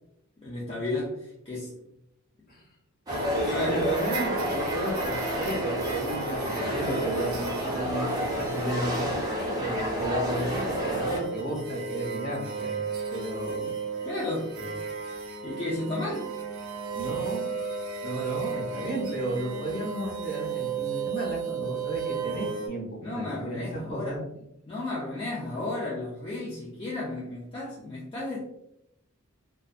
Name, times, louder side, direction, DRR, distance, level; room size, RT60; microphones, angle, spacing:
voice 1, 0.4-1.7 3.4-3.8 14.0-14.5 15.4-16.3 23.0-24.2 24.7-28.4, left 2 dB, 25° left, -7 dB, 0.5 m, -33 dB
sound 1, 3.1-11.2, equal, 20° right, 0.6 m, -30 dB
sound 2, 3.1-22.7, right 5 dB, 70° right, 0.6 m, -35 dB
voice 2, 3.6-9.1 9.6-13.7 14.6-14.8 16.9-17.4 18.0-24.2, right 1 dB, 45° left, -4 dB, 1.1 m, -34 dB
2.5 x 2.3 x 2.4 m, 0.80 s
head